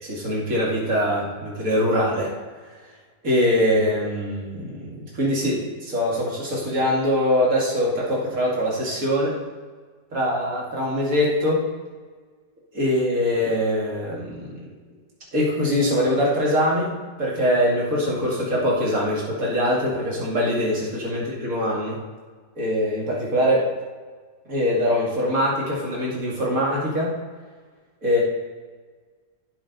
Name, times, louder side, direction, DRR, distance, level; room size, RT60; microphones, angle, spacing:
voice 1, 0.0-2.3 3.2-9.4 10.1-11.7 12.7-14.7 15.3-22.0 22.6-23.7 24.5-27.2 28.0-28.2, equal, 50° right, -5 dB, 2.6 m, -23 dB
15.5 x 5.6 x 4.0 m, 1.5 s
omnidirectional pair, 1.8 m